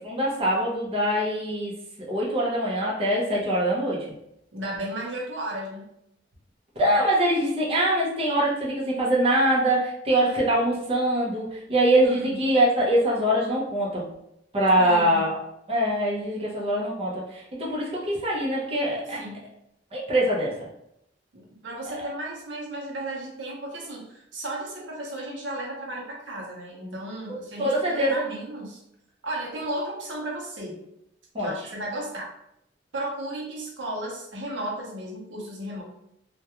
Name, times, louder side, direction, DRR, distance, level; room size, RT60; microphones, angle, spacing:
voice 1, 0.0-1.7 2.1-4.1 6.8-14.1 14.5-15.4 15.7-19.2 19.9-20.5 27.3-28.3 31.3-31.5, right 1 dB, 30° right, -5 dB, 0.6 m, -23 dB
voice 2, 4.5-5.9 10.3-10.4 12.0-12.4 14.8-15.2 19.2-19.4 21.3-28.8 29.2-30.8 31.4-32.3 32.9-35.8, right 1 dB, 80° right, -1 dB, 0.7 m, -34 dB
2.3 x 2.2 x 2.8 m, 0.78 s
head